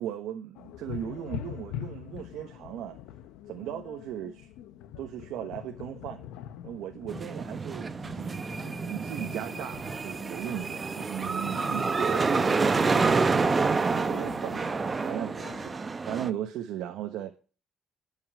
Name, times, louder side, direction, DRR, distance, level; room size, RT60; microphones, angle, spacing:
voice 1, 0.0-3.0 3.5-4.5 5.0-6.3 6.6-8.4 8.8-13.3 13.7-14.7 15.0-17.4, right 11 dB, 80° right, 1.2 m, -37 dB
sound 1, 0.5-15.8, left 11 dB, 85° left, 0.8 m, -44 dB
sound 2, 7.1-16.3, right 4 dB, 30° right, 0.9 m, -28 dB
11.0 x 5.7 x 8.0 m
supercardioid pair, 75°, 0 cm